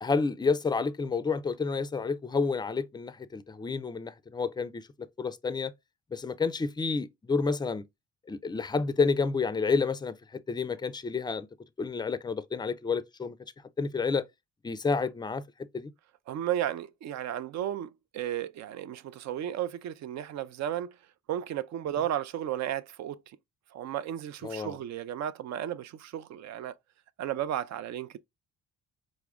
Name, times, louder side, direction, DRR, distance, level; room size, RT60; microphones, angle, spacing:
voice 1, 0.0-4.8 5.2-5.7 6.1-7.8 8.3-11.5 11.8-13.4 13.8-14.3 14.6-15.4 15.7-15.9 24.4-24.8, left 4 dB, 15° left, 0.3 m, -29 dB
voice 2, 16.3-21.0 21.3-23.4 23.7-26.7 27.2-28.2, right 11 dB, 65° right, 0.4 m, -34 dB
4.7 x 2.1 x 3.4 m
cardioid pair, 90°, 30 cm